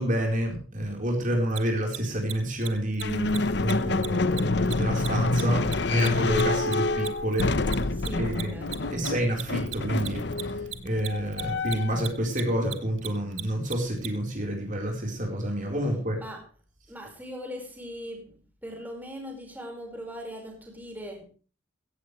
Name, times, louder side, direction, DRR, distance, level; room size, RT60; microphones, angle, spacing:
voice 1, 0.0-5.6 5.9-7.5 8.2-8.6 8.9-10.2 10.8-16.2, right 1 dB, 40° right, 4.2 m, -28 dB
Mechanisms, 1.5-1.6 1.9-2.0 2.2-2.3 2.6-2.7 2.9-3.0 3.3-3.4 3.6-3.7 4.0-6.7 7.0-14.1, right 15 dB, 75° right, 1.6 m, -36 dB
sound 1, 3.0-12.1, left 2 dB, 55° left, 0.9 m, -27 dB
voice 2, 6.3-6.7 7.9-9.0 16.1-16.5 16.9-21.2, equal, 10° right, 4.9 m, -40 dB
16.5 x 15.5 x 3.2 m
head